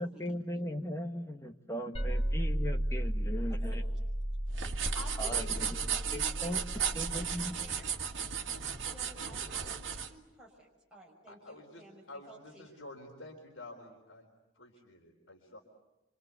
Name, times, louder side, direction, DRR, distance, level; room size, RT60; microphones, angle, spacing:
voice 1, 0.0-3.8 5.2-5.8 6.1-6.6 6.9-7.5, equal, 15° left, 5 dB, 1.5 m, -38 dB
sound 1, 1.9-7.5, right 1 dB, 30° left, 4.0 m, -34 dB
voice 2, 3.5-3.8 4.9-7.9 8.7-12.7, right 1 dB, 5° right, -4 dB, 6.1 m, -52 dB
sound 2, 4.5-10.1, right 7 dB, 70° right, 2.0 m, -35 dB
voice 3, 11.3-14.3 14.5-15.6, left 2 dB, 80° left, 1 dB, 3.8 m, -50 dB
27.5 x 26.5 x 8.3 m, 1.0 s
head